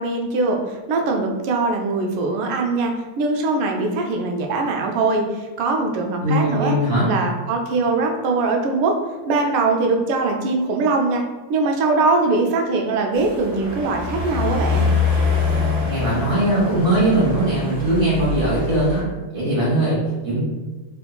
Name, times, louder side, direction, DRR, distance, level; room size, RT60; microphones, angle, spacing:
voice 1, 0.0-6.8 7.1-9.0 9.3-11.2 11.5-14.9, right 3 dB, 80° right, 2 dB, 1.4 m, -21 dB
voice 2, 6.2-7.1 15.8-19.0 19.3-20.4, right 1 dB, 35° right, -7 dB, 0.9 m, -20 dB
sound 1, 13.1-19.0, left 4 dB, 15° right, 0.6 m, -24 dB
3.6 x 3.4 x 2.2 m, 1.2 s
omnidirectional pair, 2.4 m